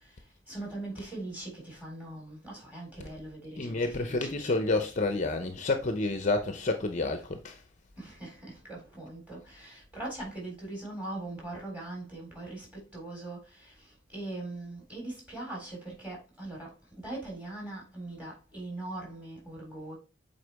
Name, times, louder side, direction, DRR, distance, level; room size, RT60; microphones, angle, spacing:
voice 1, 0.0-4.8 8.0-16.8 17.0-20.0, right 2 dB, 10° right, 3.6 m, -41 dB
voice 2, 3.6-7.6, left 3 dB, 40° left, 0.7 m, -29 dB
8.1 x 4.2 x 3.4 m
head